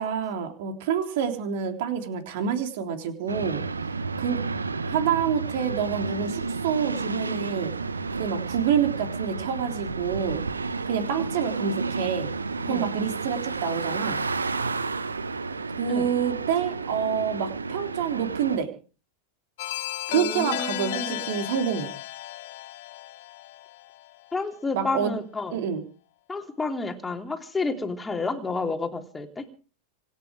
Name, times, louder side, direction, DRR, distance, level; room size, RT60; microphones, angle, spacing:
voice 1, 0.0-3.6 4.2-4.4 4.9-7.7 8.2-10.4 10.9-12.3 12.7-14.2 15.8-18.7 20.1-21.9 24.7-25.2 25.5-25.8, right 7 dB, 50° right, 6 dB, 3.5 m, -27 dB
sound 1, 3.3-18.6, right 4 dB, 75° right, 1.1 m, -31 dB
sound 2, 19.6-24.3, left 15 dB, 55° left, 1.2 m, -34 dB
voice 2, 20.1-21.3 24.3-25.6 26.3-29.5, left 3 dB, 10° left, 4 dB, 3.0 m, -30 dB
26.5 x 9.9 x 4.9 m, 0.39 s
figure-of-eight pair, 90°, 0 cm